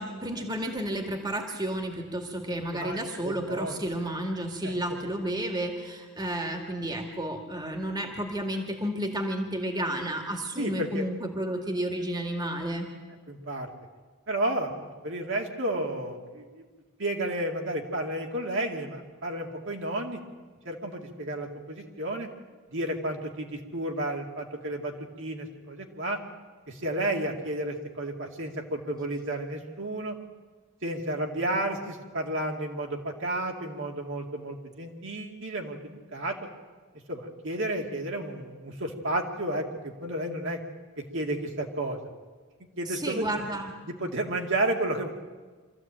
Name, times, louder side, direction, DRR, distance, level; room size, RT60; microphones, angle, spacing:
voice 1, 0.0-12.9 42.9-43.7, right 1 dB, 20° right, 3 dB, 2.1 m, -32 dB
voice 2, 2.6-3.8 4.6-5.0 10.6-11.1 13.3-13.7 14.3-16.6 17.0-20.2 20.6-22.3 22.7-26.2 26.7-30.2 30.8-36.4 37.1-40.6 41.1-42.0 42.8-43.4 43.8-45.1, right 1 dB, 60° right, 1 dB, 2.3 m, -32 dB
24.5 x 14.5 x 8.8 m, 1.4 s
head